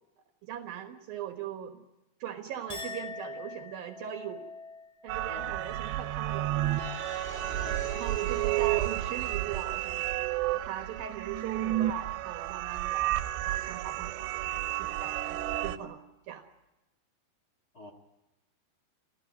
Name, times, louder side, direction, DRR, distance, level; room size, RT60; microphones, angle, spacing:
voice 1, 0.4-1.8 2.2-4.5 5.0-6.5 7.9-10.2 10.5-13.1 13.4-16.0 16.3-16.4, right 10 dB, 65° right, 6 dB, 2.8 m, -40 dB
Chink clink, 2.7-9.3 9.6-10.2, left 3 dB, ahead, 6.6 m, -46 dB
sound 1, 5.1-15.8, right 14 dB, 80° right, 3.1 m, -31 dB
sound 2, 6.6-11.5, left 2 dB, 30° left, 2.7 m, -48 dB
voice 2, 7.5-8.2 17.7-17.9, left 1 dB, 60° left, 3 dB, 0.9 m, -47 dB
28.5 x 15.0 x 9.3 m, 1.0 s
omnidirectional pair, 5.0 m